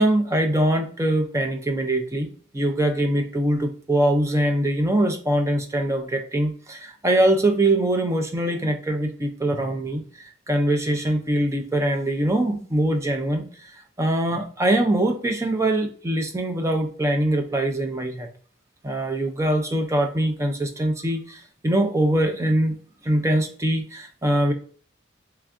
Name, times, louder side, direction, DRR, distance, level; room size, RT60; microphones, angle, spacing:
voice 1, 0.0-13.7 14.0-18.3 18.8-22.7 23.0-24.5, right 1 dB, 15° right, 5 dB, 0.4 m, -23 dB
3.3 x 2.5 x 3.4 m, 0.43 s
head